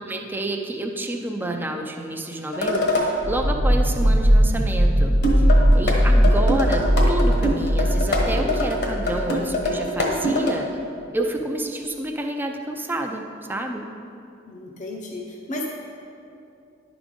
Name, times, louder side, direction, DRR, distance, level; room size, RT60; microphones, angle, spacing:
voice 1, 0.0-5.1 5.7-10.7 11.1-13.2 13.5-13.9, right 1 dB, 10° right, 2 dB, 0.5 m, -29 dB
sound 1, 2.5-3.1 5.2-6.0 6.2-10.5, left 1 dB, 60° left, 1.3 m, -23 dB
sound 2, 3.2-10.0, equal, 80° right, 1.0 m, -19 dB
voice 2, 14.5-15.7, left 1 dB, 40° left, -1 dB, 0.8 m, -33 dB
10.5 x 5.0 x 5.2 m, 2.5 s
head